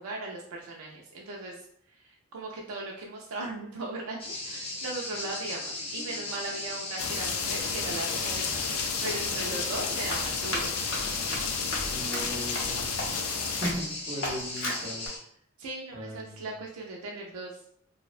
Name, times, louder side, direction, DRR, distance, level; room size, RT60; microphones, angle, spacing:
voice 1, 0.0-1.6 2.3-10.7 15.6-17.6, right 2 dB, 85° right, -1 dB, 0.4 m, -38 dB
sound 1, 4.2-15.2, left 2 dB, 25° left, 0.6 m, -37 dB
sound 2, 7.0-13.7, left 6 dB, 80° left, 0.3 m, -32 dB
Run, 9.7-13.3 13.6-13.9 14.2-15.1, left 1 dB, 60° left, 0.7 m, -36 dB
voice 2, 11.9-13.0 13.6-15.1 15.9-16.4, equal, 25° right, -2 dB, 0.6 m, -37 dB
2.6 x 2.1 x 2.4 m, 0.68 s
head